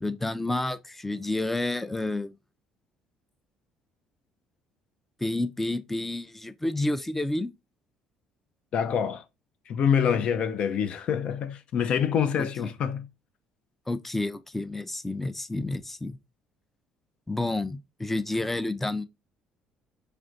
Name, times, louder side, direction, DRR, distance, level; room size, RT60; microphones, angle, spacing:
voice 1, 0.0-2.3 5.2-7.5 13.9-16.2 17.3-19.0, left 2 dB, 10° left, 0.5 m, -30 dB
voice 2, 8.7-9.2 9.7-13.1, left 7 dB, 60° left, 0.5 m, -26 dB
3.4 x 2.5 x 3.8 m
hypercardioid pair, 65°, 2 cm